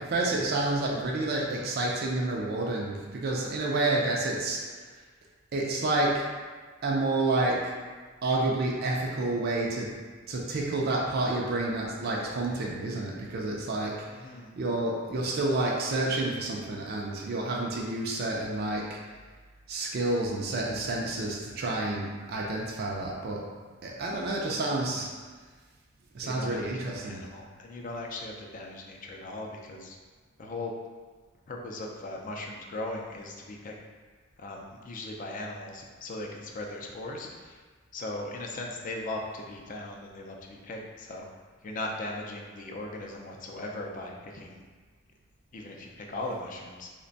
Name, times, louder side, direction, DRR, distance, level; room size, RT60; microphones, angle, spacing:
voice 1, 0.0-4.9 5.5-6.2 6.8-7.7 8.2-9.9 10.3-19.0 19.7-23.5 23.8-25.1 26.1-27.2, right 2 dB, 50° right, -2 dB, 0.4 m, -29 dB
voice 2, 14.1-14.5 24.7-25.0 26.2-26.6 26.9-30.0 30.4-30.7 31.5-33.7 34.4-37.6 37.9-41.3 41.6-44.6 45.5-46.9, left 2 dB, 40° left, 0 dB, 0.4 m, -38 dB
3.3 x 2.2 x 3.9 m, 1.5 s
head